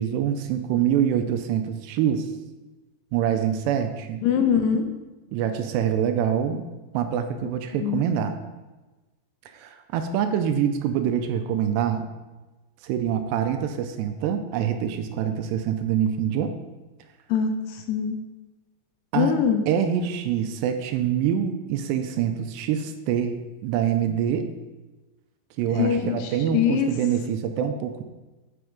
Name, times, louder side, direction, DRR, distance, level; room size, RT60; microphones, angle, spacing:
voice 1, 0.0-2.3 3.1-4.2 5.3-6.7 6.9-8.4 9.5-12.1 12.8-16.6 19.1-19.4 19.7-23.4 23.6-24.5 25.6-28.0, right 9 dB, 85° right, 7 dB, 2.7 m, -25 dB
voice 2, 4.2-4.9 7.8-8.0 17.3-18.2 19.1-19.6 25.8-26.9, left 7 dB, 80° left, 5 dB, 2.6 m, -23 dB
8.0 x 7.8 x 5.1 m, 1.2 s
omnidirectional pair, 5.1 m